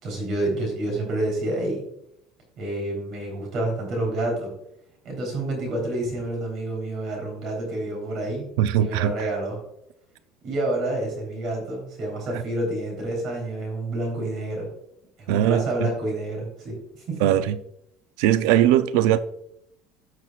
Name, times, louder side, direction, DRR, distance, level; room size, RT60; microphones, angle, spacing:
voice 1, 0.0-1.8 2.6-4.5 5.0-8.5 8.8-9.6 10.4-14.7 15.2-17.2, right 1 dB, 50° right, 3.6 m, -28 dB
voice 2, 8.6-9.3 12.3-12.4 15.3-15.9 17.2-17.6 18.2-19.2, right 12 dB, 80° right, 0.5 m, -20 dB
13.5 x 6.2 x 2.4 m
cardioid pair, 135°, 0 cm